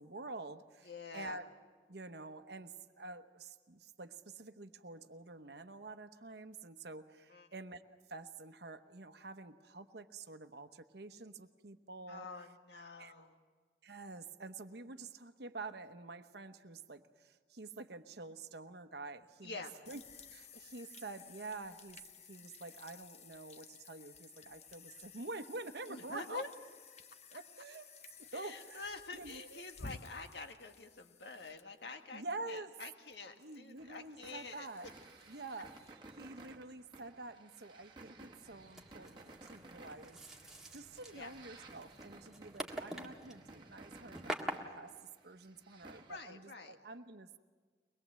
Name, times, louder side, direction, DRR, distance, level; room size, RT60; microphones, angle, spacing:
voice 1, 0.0-1.5 1.9-7.8 8.1-12.3 13.0-13.1 13.8-20.0 20.3-22.0 22.2-26.4 27.3-27.9 28.2-29.6 32.1-32.7 33.4-34.9 35.3-35.7 36.2-47.4, right 3 dB, 65° right, 9 dB, 1.0 m, -48 dB
voice 2, 0.8-1.4 7.3-7.5 12.1-13.4 19.4-19.7 25.9-26.5 28.3-34.7 41.1-41.3 46.1-46.8, left 3 dB, 70° left, 5 dB, 1.7 m, -47 dB
sound 1, 19.8-35.9, left 4 dB, 40° left, 0.9 m, -56 dB
sound 2, 33.8-46.2, right 3 dB, 25° right, 1.3 m, -56 dB
sound 3, 38.5-44.5, right 1 dB, 5° right, 1.6 m, -46 dB
23.0 x 21.0 x 7.6 m, 1.5 s
head